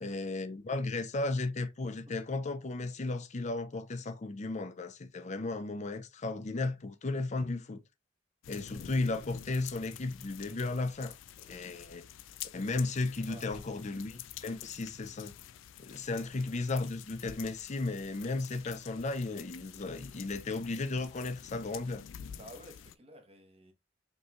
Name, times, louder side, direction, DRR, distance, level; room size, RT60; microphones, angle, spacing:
voice 1, 0.0-7.8 8.5-11.1 11.5-12.1 12.5-15.3 15.8-22.0, left 3 dB, 40° left, 0.5 m, -35 dB
sound 1, 8.4-23.0, left 10 dB, 85° left, 0.3 m, -49 dB
voice 2, 22.4-23.7, right 1 dB, 35° right, 1.1 m, -52 dB
5.3 x 3.1 x 2.4 m
head